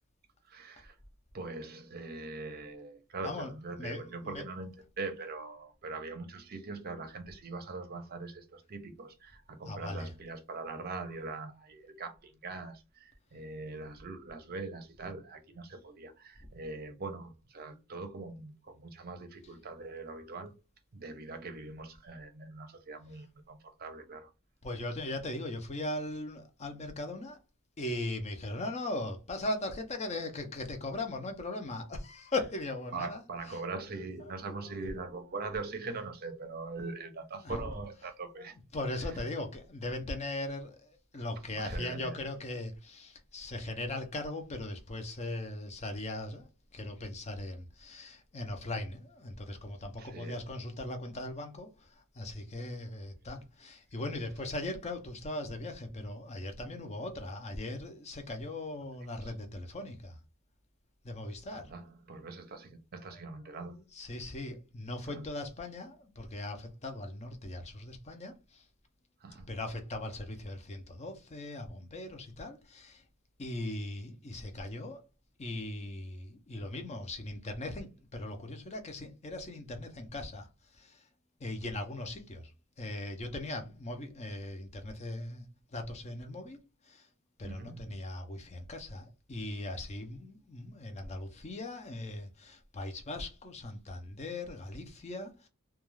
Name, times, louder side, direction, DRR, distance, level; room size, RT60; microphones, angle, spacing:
voice 1, 0.4-1.0 1.3-20.5 20.9-24.3 32.9-38.6 39.0-39.2 41.5-42.2 50.0-50.4 59.2-59.3 61.5-63.8 65.1-65.2 69.2-69.5 87.4-87.9, right 3 dB, 45° right, 0.6 m, -42 dB
voice 2, 3.8-4.4 9.7-10.1 24.6-27.4 27.8-33.2 34.4-34.5 37.4-37.7 38.7-60.2 61.0-61.7 63.9-68.6 69.5-73.0 73.4-75.0 75.4-81.1 81.4-82.5 82.8-86.6 86.8-87.1 87.4-95.5, left 2 dB, 30° left, 0.6 m, -39 dB
2.3 x 2.3 x 3.1 m
head